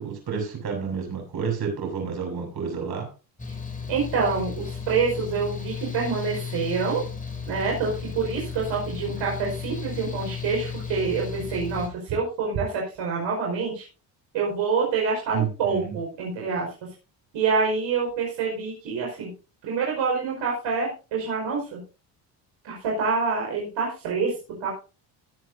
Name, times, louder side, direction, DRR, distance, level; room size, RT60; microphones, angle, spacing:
voice 1, 0.0-3.1 15.3-16.0, right 6 dB, 55° right, 2 dB, 6.9 m, -30 dB
Mechanical fan, 3.4-11.9, left 6 dB, 15° left, 3.2 m, -34 dB
voice 2, 3.9-7.0 7.5-13.9 14.3-16.7 17.3-19.3 19.6-21.8 22.6-24.3 24.6-24.7, right 5 dB, 75° right, -2 dB, 5.4 m, -26 dB
19.5 x 8.2 x 2.7 m, 0.32 s
supercardioid pair, 75°, 45 cm